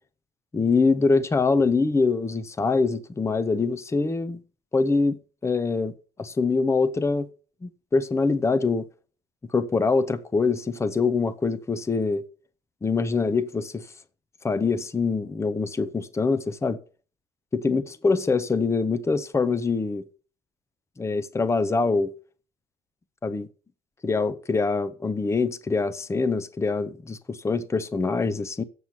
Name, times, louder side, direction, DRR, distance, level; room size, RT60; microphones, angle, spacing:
voice 1, 0.5-4.4 4.7-5.9 6.2-7.3 7.6-8.9 9.5-12.2 12.8-13.9 14.4-16.8 17.5-20.0 21.0-22.1 23.2-23.5 24.0-28.6, left 4 dB, 15° left, 0.7 m, -24 dB
7.9 x 7.4 x 5.8 m
cardioid pair, 110°, 17 cm